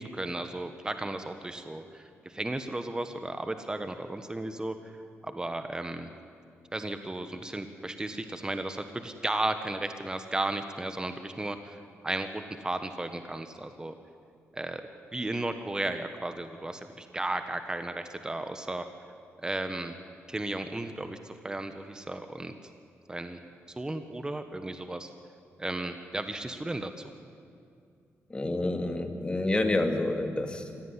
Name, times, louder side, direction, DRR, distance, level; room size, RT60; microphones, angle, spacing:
voice 1, 0.1-2.0 2.3-4.7 5.2-6.1 6.7-11.8 12.0-13.9 14.5-14.8 15.1-18.8 19.4-19.9 20.3-21.2 21.4-22.5 23.1-23.4 23.8-25.1 25.6-26.9, right 2 dB, 15° right, 8 dB, 1.3 m, -34 dB
voice 2, 28.3-30.9, left 2 dB, 20° left, 5 dB, 2.6 m, -29 dB
24.0 x 16.5 x 9.8 m, 2.4 s
cardioid pair, 95°, 5 cm